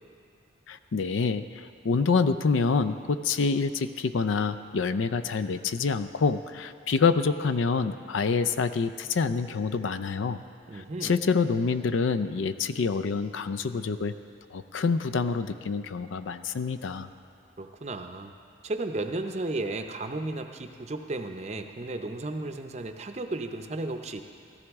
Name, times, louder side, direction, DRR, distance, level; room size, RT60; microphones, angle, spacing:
voice 1, 0.7-10.4 10.7-14.1 14.5-17.1, left 5 dB, 85° left, 12 dB, 0.4 m, -27 dB
voice 2, 10.7-11.2 17.6-18.3 18.6-24.2, right 2 dB, 35° right, 6 dB, 0.6 m, -34 dB
14.5 x 13.5 x 3.6 m, 2.6 s
head